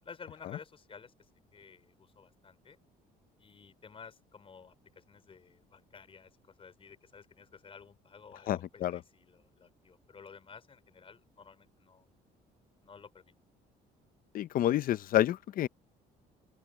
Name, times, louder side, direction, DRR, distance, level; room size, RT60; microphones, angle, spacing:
voice 1, 0.0-2.8 3.4-12.1 12.8-13.3, left 5 dB, 35° left, 4.9 m, -53 dB
voice 2, 8.5-9.0 14.3-15.7, left 13 dB, 60° left, 0.7 m, -29 dB
open air
cardioid pair, 110°, 17 cm